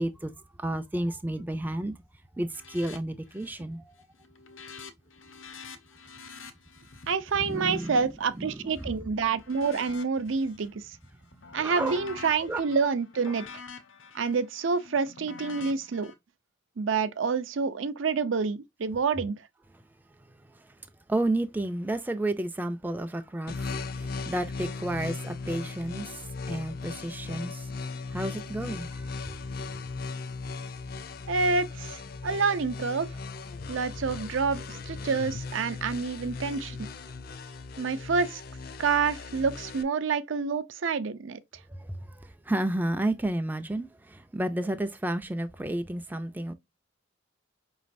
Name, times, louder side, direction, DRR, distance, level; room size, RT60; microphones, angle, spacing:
voice 1, 0.0-2.0 2.3-3.9 7.3-8.0 8.4-8.9 11.4-12.0 12.5-12.6 20.2-27.7 28.1-29.8 41.7-46.5, right 1 dB, 10° right, 0.3 m, -32 dB
sound 1, 2.5-3.0 3.3-3.7 4.0-8.9 9.4-10.7 11.1-16.1, left 4 dB, 80° left, 0.8 m, -47 dB
voice 2, 7.1-11.0 11.5-13.5 14.1-16.1 16.8-19.4 31.3-33.1 33.7-36.9 37.8-38.4 38.8-41.4, right 5 dB, 70° right, 0.5 m, -28 dB
sound 2, 23.5-39.8, left 4 dB, 50° left, 0.5 m, -38 dB
5.2 x 3.1 x 2.5 m
head